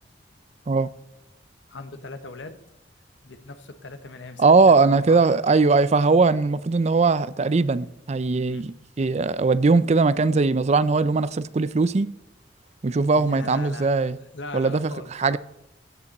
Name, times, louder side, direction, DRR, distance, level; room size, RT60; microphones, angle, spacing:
voice 1, 1.7-2.6 3.2-5.2 8.4-8.7 13.1-15.4, left 3 dB, 85° left, 1.2 m, -40 dB
voice 2, 4.4-12.1 12.8-14.2 14.5-15.4, right 4 dB, 40° right, 0.4 m, -20 dB
15.0 x 9.7 x 4.2 m
head